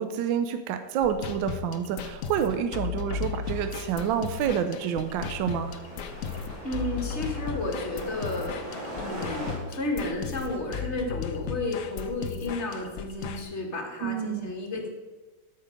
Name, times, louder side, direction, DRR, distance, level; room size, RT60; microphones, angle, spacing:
voice 1, 0.0-5.8 14.0-14.5, right 8 dB, 80° right, 8 dB, 1.3 m, -28 dB
sound 1, 1.0-13.4, left 7 dB, 75° left, 0.7 m, -36 dB
sound 2, 3.4-9.6, equal, 20° right, 2.7 m, -41 dB
voice 2, 6.6-14.9, left 2 dB, 35° left, 2 dB, 1.6 m, -32 dB
13.0 x 5.6 x 5.0 m, 1.3 s
omnidirectional pair, 2.1 m